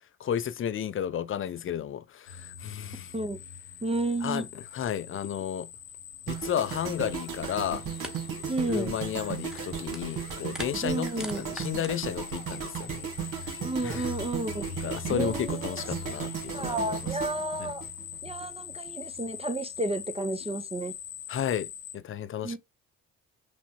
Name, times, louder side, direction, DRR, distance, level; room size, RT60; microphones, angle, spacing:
voice 1, 0.2-3.1 4.2-5.7 6.3-7.8 8.7-13.1 13.8-14.1 14.8-17.0 17.6-17.7 21.3-22.6, left 9 dB, 40° left, 0.5 m, -33 dB
sound 1, 2.3-21.9, left 7 dB, 90° left, 0.7 m, -43 dB
voice 2, 3.8-4.5 8.5-9.0 10.8-11.4 13.6-14.6 15.1-15.8 16.5-17.8 18.2-20.9 22.4-22.6, right 2 dB, 15° right, 0.7 m, -31 dB
sound 2, 6.3-18.5 18.7-19.0, right 8 dB, 65° right, 1.3 m, -36 dB
sound 3, 8.0-8.2 8.4-8.7 9.1-10.2 10.4-11.9, equal, ahead, 1.0 m, -42 dB
6.0 x 2.2 x 2.8 m
hypercardioid pair, 50°, 34 cm